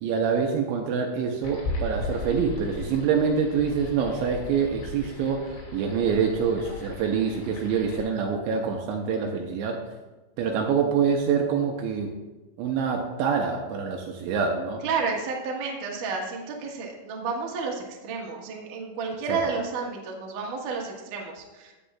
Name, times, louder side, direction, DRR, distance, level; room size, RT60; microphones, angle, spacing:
voice 1, 0.0-9.8 10.4-12.1 12.6-14.8 19.3-19.4, right 6 dB, 85° right, 1 dB, 2.8 m, -26 dB
sound 1, 1.4-8.0, left 2 dB, 75° left, 5.0 m, -37 dB
voice 2, 14.8-21.7, right 4 dB, 65° right, -1 dB, 2.1 m, -31 dB
15.0 x 8.6 x 2.4 m, 1.2 s
omnidirectional pair, 5.8 m